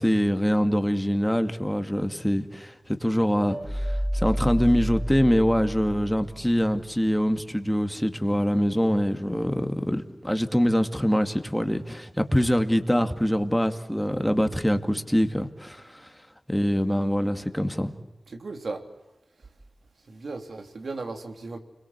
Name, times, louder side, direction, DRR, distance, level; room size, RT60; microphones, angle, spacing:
voice 1, 0.0-16.1 16.5-17.9, equal, 5° left, 2.2 m, -24 dB
sound 1, 3.5-6.7, equal, 30° right, 3.4 m, -30 dB
voice 2, 18.3-18.8 20.1-21.6, right 3 dB, 75° right, 3.2 m, -36 dB
29.5 x 22.5 x 8.2 m
wide cardioid pair, 75°, 0 cm